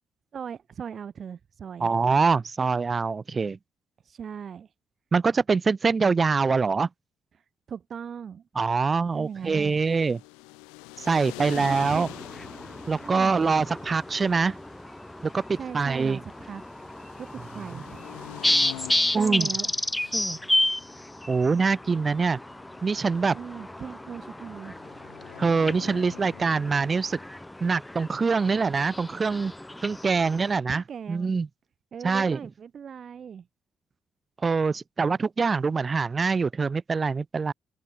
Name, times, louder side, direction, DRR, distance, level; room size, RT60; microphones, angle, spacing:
voice 1, 0.3-1.9 4.0-4.7 7.7-8.4 9.1-9.8 11.4-12.1 13.0-13.5 15.5-16.6 17.2-18.0 19.1-20.4 23.3-24.8 30.7-31.3 31.9-33.5, right 7 dB, 55° right, 7.2 m, -39 dB
voice 2, 1.8-3.6 5.1-6.9 8.6-10.2 11.0-12.1 12.9-14.6 15.3-16.2 19.1-19.5 21.3-22.4 22.8-23.4 25.4-27.2 27.6-29.5 29.8-31.5 32.0-32.4 34.4-37.5, right 4 dB, 40° right, 0.4 m, -24 dB
sound 1, 9.3-27.2, left 30 dB, 85° left, 7.0 m, -46 dB
sound 2, 11.6-30.6, left 1 dB, 10° left, 2.3 m, -32 dB
open air
hypercardioid pair, 50°, 0 cm